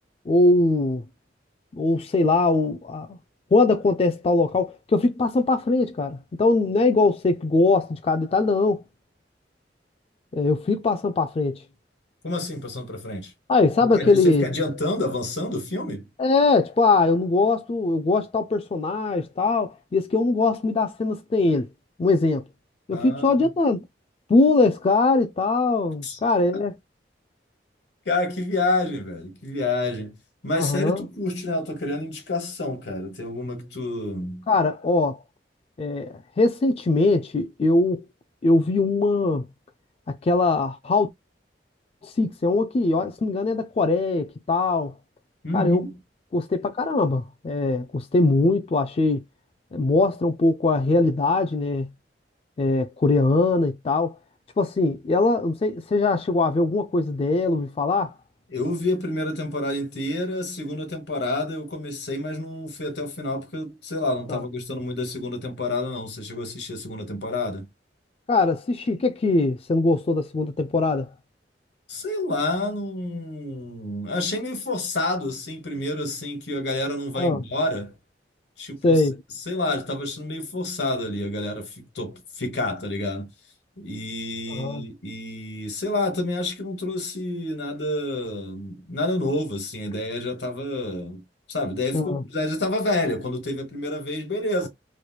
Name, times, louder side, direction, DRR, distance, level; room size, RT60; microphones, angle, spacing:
voice 1, 0.3-1.0 1.7-3.2 3.5-8.8 10.3-11.6 13.5-14.5 16.2-21.7 22.0-22.4 22.9-23.8 24.3-26.7 30.6-31.1 34.5-35.2 35.8-38.0 38.4-39.5 40.2-41.1 42.0-44.9 45.5-45.9 46.3-49.2 49.7-51.9 52.6-54.1 54.6-58.1 64.3-64.4 68.3-71.1 77.2-77.4 78.8-79.2 84.5-84.8 91.9-92.2, left 3 dB, 35° left, 0.3 m, -21 dB
voice 2, 12.2-13.3 13.8-16.1 22.9-23.5 26.0-26.2 26.5-26.6 28.0-30.2 30.4-34.5 45.4-46.0 58.5-67.7 71.9-77.9 78.6-79.0 79.5-83.3 83.8-94.7, left 2 dB, 75° left, 1.3 m, -29 dB
3.2 x 2.9 x 2.2 m
head